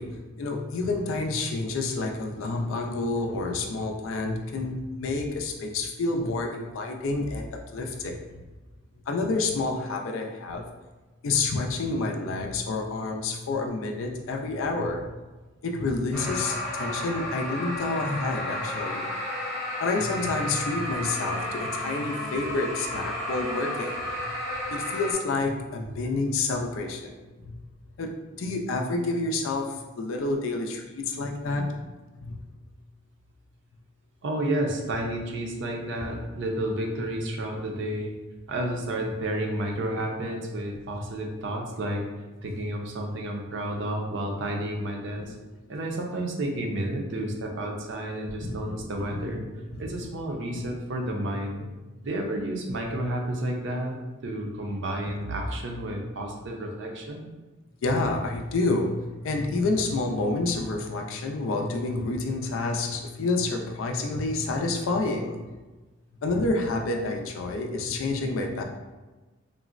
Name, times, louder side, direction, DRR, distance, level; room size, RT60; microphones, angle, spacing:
voice 1, 0.0-8.2 9.1-10.6 11.2-15.1 15.6-19.1 19.8-24.3 24.7-27.1 27.5-27.6 28.0-31.7 32.2-32.4 40.9-41.0 48.4-49.3 49.7-50.0 57.8-65.4 66.2-68.6, left 3 dB, 75° left, 3 dB, 0.4 m, -29 dB
sound 1, 16.1-25.1, left 1 dB, ahead, 0.8 m, -32 dB
voice 2, 34.2-38.1 38.5-42.1 42.4-45.3 45.7-49.4 49.8-51.7 52.0-54.0 54.2-57.3, right 1 dB, 60° right, 1 dB, 0.5 m, -31 dB
3.7 x 2.0 x 2.4 m, 1.2 s
head